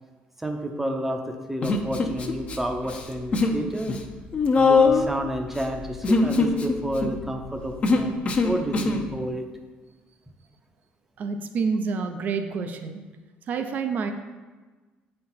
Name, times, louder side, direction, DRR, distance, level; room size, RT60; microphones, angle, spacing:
voice 1, 0.4-4.0 4.6-9.4, right 1 dB, 5° right, 4 dB, 0.7 m, -30 dB
Human voice, 1.6-2.6 2.8-3.6 3.9-9.1, left 4 dB, 35° left, 0.8 m, -22 dB
voice 2, 11.2-13.0 13.5-14.1, right 5 dB, 50° right, 7 dB, 0.6 m, -28 dB
8.4 x 4.4 x 4.1 m, 1.3 s
cardioid pair, 105°, 4 cm